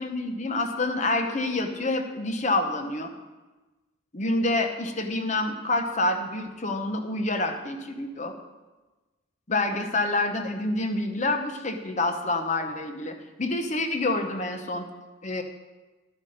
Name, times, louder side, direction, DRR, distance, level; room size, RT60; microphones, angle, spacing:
voice 1, 0.0-3.1 4.1-8.3 9.5-14.9 15.2-15.4, left 2 dB, 35° left, 6 dB, 0.9 m, -27 dB
12.0 x 8.2 x 5.1 m, 1.2 s
head